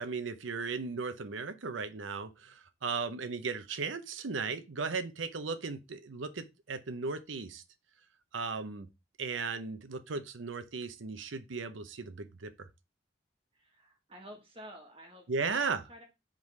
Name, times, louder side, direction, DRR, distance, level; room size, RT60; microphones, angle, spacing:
voice 1, 0.0-7.6 8.3-8.9 9.2-12.5 15.3-15.8, right 4 dB, 80° right, 0.7 m, -36 dB
voice 2, 13.5-16.0, equal, 30° right, 1.1 m, -50 dB
4.8 x 3.7 x 5.3 m
head